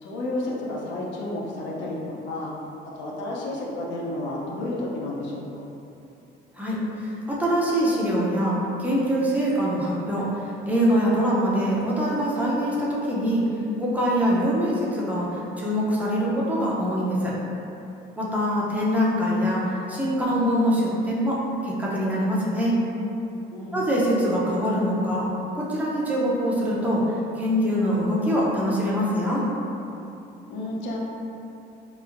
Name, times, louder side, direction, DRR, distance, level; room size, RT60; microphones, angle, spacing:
voice 1, 0.0-2.5 3.0-5.6 23.5-23.9 30.5-31.0, left 1 dB, 75° left, -3 dB, 0.5 m, -31 dB
voice 2, 6.6-13.4 13.8-17.3 18.2-22.8 23.7-25.3 25.6-27.0 27.4-29.5, equal, 10° right, -7 dB, 0.5 m, -24 dB
2.9 x 2.1 x 2.4 m, 2.8 s
cardioid pair, 100°, 19 cm